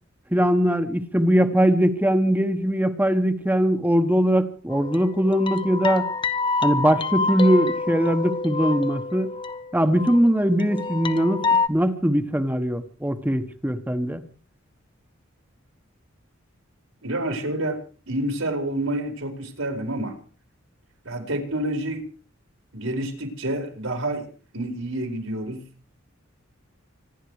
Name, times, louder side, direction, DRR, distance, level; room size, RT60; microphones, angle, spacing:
voice 1, 0.3-6.1 6.6-9.3 9.7-14.2, equal, 10° right, 8 dB, 1.2 m, -21 dB
sound 1, 4.7-10.3 10.6-11.7, left 4 dB, 25° left, 1.0 m, -27 dB
voice 2, 17.0-17.8 18.1-20.2 21.0-22.0 22.7-24.3 24.5-25.6, right 1 dB, 80° right, 5 dB, 4.5 m, -28 dB
25.5 x 11.0 x 4.9 m, 0.40 s
head